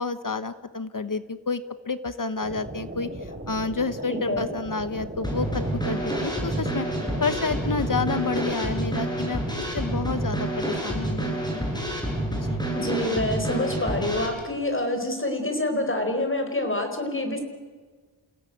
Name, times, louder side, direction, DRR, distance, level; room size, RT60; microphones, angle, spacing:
voice 1, 0.0-3.1 3.5-6.9 7.2-9.4 9.7-11.7 12.3-12.6, left 4 dB, 40° left, 12 dB, 1.0 m, -29 dB
sound 1, 2.4-8.7, right 1 dB, 25° right, 4.5 m, -37 dB
voice 2, 4.1-4.4 12.7-17.4, left 1 dB, 25° left, 5 dB, 4.8 m, -27 dB
Drum kit / Snare drum, 5.2-14.3, right 1 dB, 10° left, 7.1 m, -28 dB
28.5 x 17.0 x 9.2 m, 1.5 s
wide cardioid pair, 105°, 48 cm